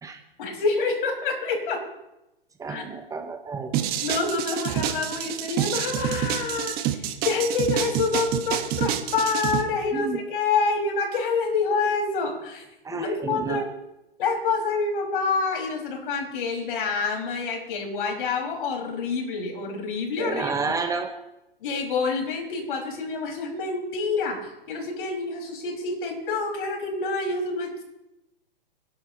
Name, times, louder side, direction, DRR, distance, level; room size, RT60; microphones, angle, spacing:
voice 1, 0.4-1.8 2.7-2.8 4.0-12.6 12.9-13.7 14.2-20.7 21.6-27.8, left 4 dB, 60° left, 1 dB, 5.7 m, -27 dB
voice 2, 2.6-3.8 9.9-10.2 12.8-13.6 20.2-21.1, right 4 dB, 10° right, 6 dB, 0.9 m, -30 dB
sound 1, 3.7-9.6, right 11 dB, 30° right, 1.4 m, -27 dB
26.5 x 11.5 x 3.1 m, 0.91 s
hypercardioid pair, 125°, 29 cm